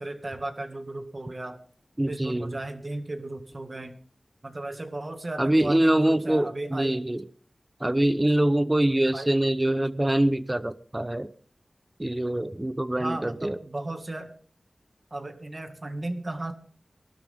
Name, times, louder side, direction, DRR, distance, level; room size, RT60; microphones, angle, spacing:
voice 1, 0.0-1.6 2.1-4.0 4.4-6.9 7.8-8.0 9.1-9.3 13.0-14.3 15.1-16.5, right 2 dB, 40° right, 7 dB, 2.0 m, -35 dB
voice 2, 2.0-2.5 5.4-7.2 7.8-11.3 12.0-13.6, right 1 dB, 20° right, 14 dB, 0.9 m, -24 dB
23.0 x 12.5 x 3.6 m, 0.42 s
wide cardioid pair, 80°, 0 cm